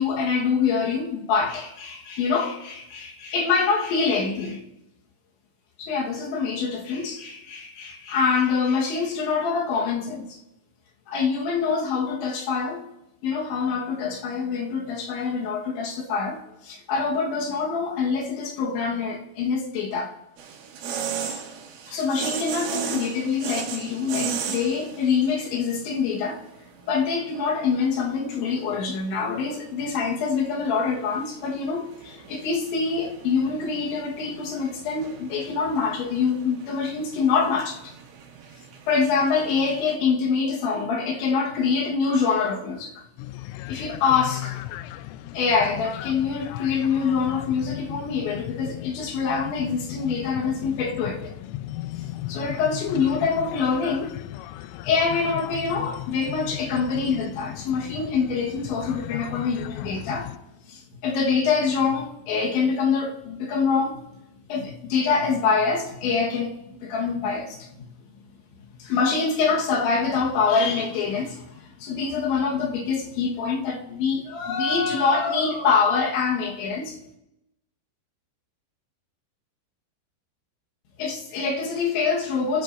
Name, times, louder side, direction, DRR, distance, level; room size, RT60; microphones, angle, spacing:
voice 1, 0.0-4.6 5.8-10.4 11.1-12.8 13.2-20.1 21.9-26.4 26.9-37.9 38.9-43.0 43.7-44.6 45.3-51.3 52.3-54.2 54.8-60.3 60.7-64.0 64.5-67.9 68.8-77.0 81.0-82.6, left 5 dB, 75° left, 3.6 m, -25 dB
sound 1, 20.4-40.0, right 7 dB, 90° right, 4.3 m, -37 dB
sound 2, 43.2-60.4, left 15 dB, 90° left, 3.2 m, -36 dB
29.0 x 13.0 x 2.6 m
omnidirectional pair, 5.6 m